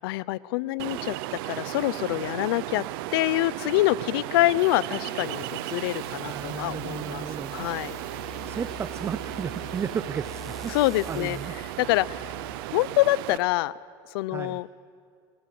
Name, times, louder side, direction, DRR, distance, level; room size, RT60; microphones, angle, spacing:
voice 1, 0.0-1.2 1.5-2.8 3.1-7.2 7.5-8.0 10.7-11.4 11.8-12.2 12.7-13.7 14.1-14.7, left 17 dB, 80° left, 21 dB, 0.6 m, -25 dB
Ocean, 0.8-13.4, right 15 dB, 75° right, 0.9 m, -35 dB
sound 1, 4.6-13.0, left 4 dB, 30° left, 5.6 m, -46 dB
voice 2, 6.2-7.6 8.4-10.7 11.1-11.5 14.3-14.6, right 7 dB, 20° right, 13 dB, 0.6 m, -34 dB
sound 2, 7.4-13.4, equal, ahead, 1.5 m, -53 dB
28.5 x 20.5 x 7.6 m, 2.3 s
supercardioid pair, 140°, 12 cm